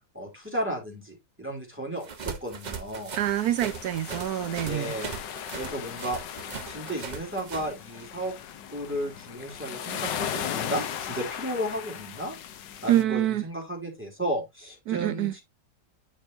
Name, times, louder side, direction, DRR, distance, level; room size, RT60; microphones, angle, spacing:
voice 1, 0.1-3.1 4.6-5.1 5.6-6.2 6.6-8.3 8.7-12.3 12.8-15.4, right 1 dB, 5° right, 2.8 m, -33 dB
sound 1, 2.0-7.7, right 5 dB, 40° right, 0.6 m, -39 dB
sound 2, 3.2-13.0, left 9 dB, 80° left, 1.5 m, -37 dB
voice 2, 3.2-4.9 12.9-13.4 14.9-15.3, right 12 dB, 70° right, 1.0 m, -26 dB
9.6 x 5.3 x 2.7 m
omnidirectional pair, 1.9 m